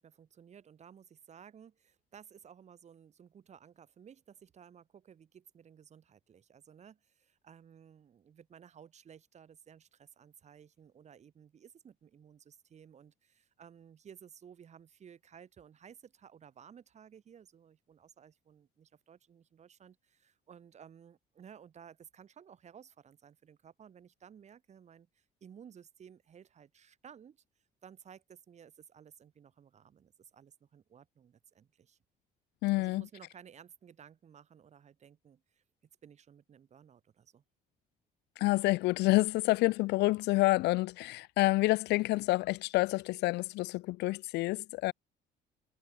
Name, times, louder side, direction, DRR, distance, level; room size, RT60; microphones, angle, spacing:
voice 1, 0.0-27.4 27.8-32.0 32.8-35.6 36.0-37.4, right 8 dB, 40° right, 2.1 m, -56 dB
voice 2, 32.6-33.1 38.4-44.9, left 20 dB, 85° left, 0.6 m, -28 dB
cardioid pair, 110°, 17 cm